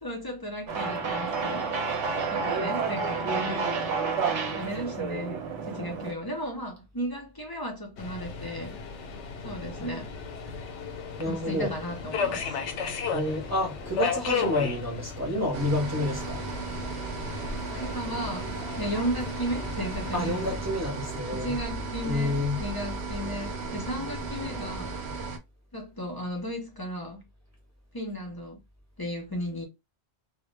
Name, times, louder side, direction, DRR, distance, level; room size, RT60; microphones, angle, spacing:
voice 1, 0.0-1.7 2.0-4.0 4.5-8.8 9.4-10.1 11.2-12.6 17.7-20.6 21.4-24.9 25.7-27.2 27.9-28.6 29.0-29.7, equal, 35° left, 0.4 m, -35 dB
sound 1, 0.7-6.1, right 4 dB, 90° right, 1.0 m, -30 dB
Subway metro underground, 8.0-20.6, left 6 dB, 90° left, 0.9 m, -35 dB
voice 2, 11.2-11.7 13.1-16.4 20.1-21.6 22.0-22.6, left 1 dB, 20° right, 0.6 m, -29 dB
sound 2, 15.5-25.4, right 3 dB, 70° right, 0.8 m, -35 dB
2.1 x 2.0 x 3.1 m
omnidirectional pair, 1.2 m